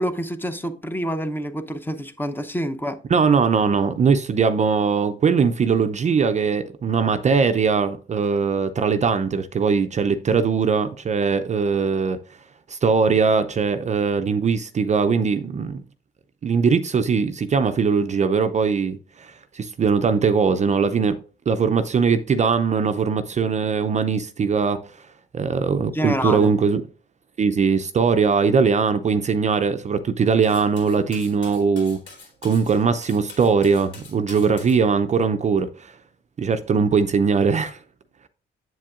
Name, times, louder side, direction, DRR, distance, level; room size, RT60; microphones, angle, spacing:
voice 1, 0.0-3.0 25.9-26.5, equal, 10° left, 0.8 m, -27 dB
voice 2, 3.1-12.2 12.7-15.8 16.4-21.2 21.5-25.1 25.3-26.8 27.4-32.0 32.4-36.0 36.4-37.8, right 5 dB, 35° right, 0.5 m, -20 dB
Cutlery silverware, 30.4-34.8, left 4 dB, 65° left, 3.5 m, -44 dB
7.7 x 7.4 x 2.4 m
cardioid pair, 90°, 20 cm